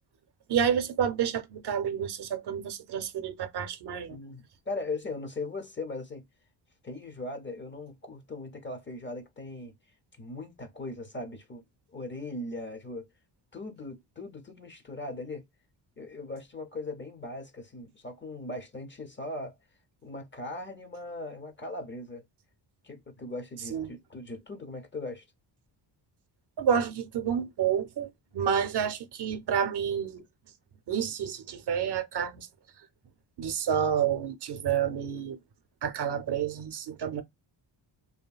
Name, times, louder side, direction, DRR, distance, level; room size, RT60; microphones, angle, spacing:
voice 1, 0.5-4.2 23.7-23.9 26.6-28.1 28.3-30.2 30.9-32.5 32.8-32.9 33.4-35.4 35.8-37.2, right 8 dB, 60° right, 0.6 m, -29 dB
voice 2, 4.1-6.2 6.8-9.8 10.2-11.7 11.9-13.1 13.5-15.5 16.0-19.5 20.0-22.2 22.8-25.2, left 2 dB, 25° left, 0.6 m, -39 dB
2.7 x 2.6 x 2.3 m
cardioid pair, 110°, 47 cm